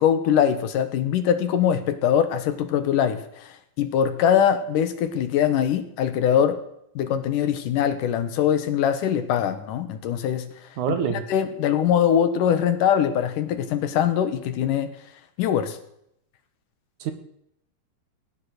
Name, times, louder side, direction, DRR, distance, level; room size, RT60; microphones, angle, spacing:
voice 1, 0.0-6.6 7.0-10.5 11.1-14.9 15.4-15.8, left 9 dB, 75° left, 9 dB, 2.6 m, -22 dB
voice 2, 10.8-11.2 17.0-17.1, right 8 dB, 65° right, 8 dB, 2.5 m, -25 dB
17.0 x 10.0 x 6.6 m, 0.75 s
omnidirectional pair, 3.9 m